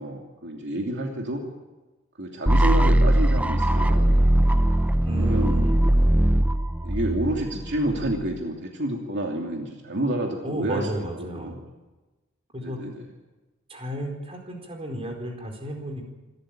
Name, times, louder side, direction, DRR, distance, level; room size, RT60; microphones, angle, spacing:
voice 1, 0.0-1.5 2.2-4.2 5.2-5.6 6.8-10.9 11.2-11.6 12.6-13.0, right 1 dB, 60° right, 1 dB, 2.8 m, -29 dB
sound 1, 2.5-8.4, right 1 dB, 5° right, 0.7 m, -20 dB
voice 2, 5.0-5.8 10.4-11.6 12.5-12.8 13.7-16.1, right 1 dB, 30° right, 2 dB, 4.5 m, -33 dB
26.5 x 13.5 x 8.9 m, 1.2 s
head